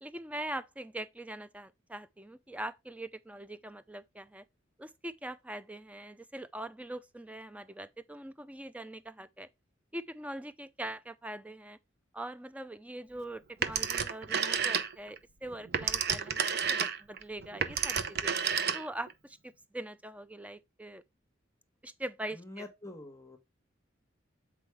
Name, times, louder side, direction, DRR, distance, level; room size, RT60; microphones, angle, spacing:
voice 1, 0.0-4.4 4.8-9.5 9.9-11.8 12.1-18.3 18.7-21.0 21.8-22.6, right 1 dB, 5° right, 0.5 m, -42 dB
Telephone, 13.6-15.2 15.5-19.1, right 7 dB, 55° right, 0.8 m, -31 dB
voice 2, 22.3-23.4, left 2 dB, 15° left, 1.3 m, -46 dB
8.1 x 4.7 x 3.3 m
head